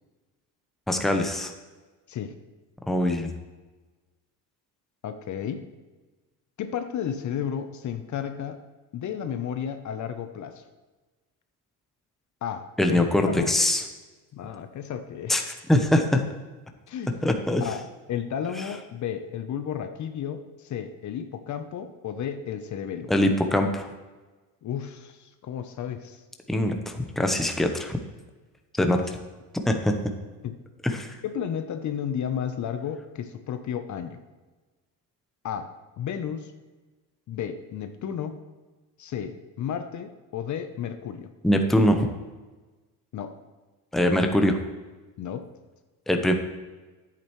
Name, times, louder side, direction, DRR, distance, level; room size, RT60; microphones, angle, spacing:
voice 1, 0.9-1.5 2.9-3.3 12.8-13.8 15.3-15.4 15.7-16.2 17.2-17.6 23.1-23.9 26.5-28.0 28.8-29.0 29.7-29.9 30.8-31.1 41.4-42.1 43.9-44.6 46.1-46.3, left 1 dB, ahead, 4 dB, 0.9 m, -22 dB
voice 2, 5.0-5.7 6.6-8.6 8.9-10.6 12.4-13.5 14.3-15.5 16.9-17.2 17.6-17.8 18.1-23.1 24.6-26.2 28.9-29.1 30.4-30.6 31.2-34.2 35.4-35.7 36.0-36.5 37.3-38.4 39.0-41.3 43.1-43.3 45.2-45.5, left 8 dB, 50° left, 9 dB, 0.8 m, -33 dB
10.0 x 8.5 x 3.1 m, 1.2 s
cardioid pair, 100°, 38 cm